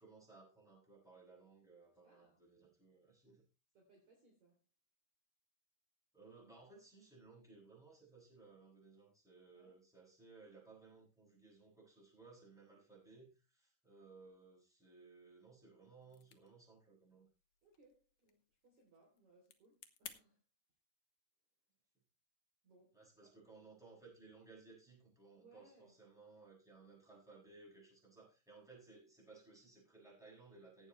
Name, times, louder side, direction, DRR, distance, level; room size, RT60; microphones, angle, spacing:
voice 1, 0.0-3.4 6.1-17.3 22.9-30.9, right 3 dB, ahead, 6.7 m, -61 dB
voice 2, 2.0-2.4 3.7-4.6 9.5-9.7 17.6-20.4 22.6-23.3 25.4-26.0, right 2 dB, 45° right, 4.2 m, -69 dB
sound 1, 16.0-20.2, left 11 dB, 70° left, 2.0 m, -59 dB
16.5 x 9.3 x 3.2 m
omnidirectional pair, 4.9 m